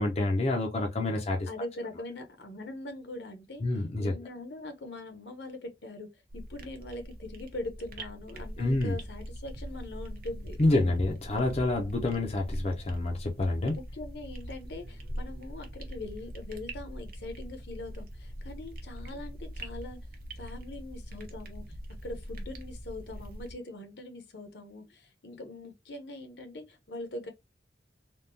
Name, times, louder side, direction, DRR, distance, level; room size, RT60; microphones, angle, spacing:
voice 1, 0.0-1.5 3.6-4.1 8.6-9.0 10.6-13.8, left 2 dB, 35° left, 0.6 m, -28 dB
voice 2, 1.5-3.6 4.0-11.0 13.7-20.0 20.4-27.3, left 2 dB, 70° left, 0.9 m, -42 dB
sound 1, 6.3-23.5, equal, 55° right, 0.8 m, -42 dB
3.5 x 2.3 x 2.6 m
head